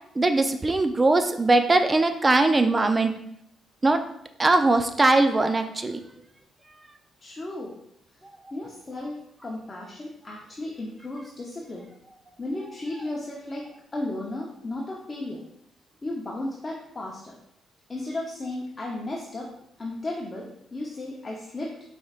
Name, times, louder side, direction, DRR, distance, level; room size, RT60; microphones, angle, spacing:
voice 1, 0.2-3.1 3.8-4.0 4.4-6.0, right 2 dB, 25° right, 7 dB, 0.4 m, -21 dB
voice 2, 7.2-7.8 8.5-11.9 12.4-15.4 16.0-17.3 17.9-19.5 19.8-21.8, left 2 dB, 30° left, -3 dB, 0.8 m, -34 dB
5.0 x 4.2 x 2.4 m, 0.75 s
cardioid pair, 90°, 0 cm